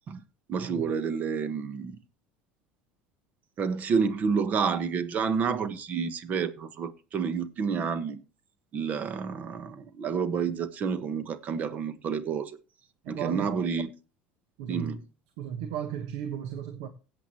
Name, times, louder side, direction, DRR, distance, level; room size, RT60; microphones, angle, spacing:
voice 1, 0.5-2.0 3.6-8.2 8.7-12.6 13.1-13.9 14.7-15.0, right 6 dB, 40° right, 1.2 m, -29 dB
voice 2, 13.0-13.5 14.6-14.9 15.4-16.9, right 9 dB, 80° right, 1.3 m, -35 dB
16.5 x 8.1 x 2.9 m
supercardioid pair, 115°, 4 cm